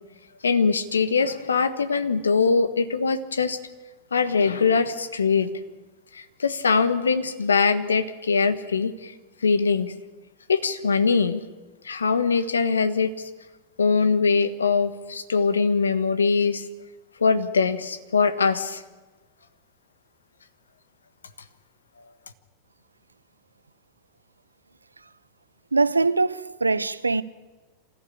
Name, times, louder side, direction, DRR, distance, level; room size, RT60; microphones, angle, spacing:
voice 1, 0.4-3.6 4.1-5.5 6.1-9.1 9.4-9.9 10.5-11.4 11.8-13.3 13.8-16.6 17.2-18.8, left 5 dB, 75° left, 1.4 m, -22 dB
voice 2, 25.7-27.2, right 3 dB, 85° right, 0.7 m, -22 dB
26.5 x 15.0 x 8.6 m
figure-of-eight pair, 90°, 0 cm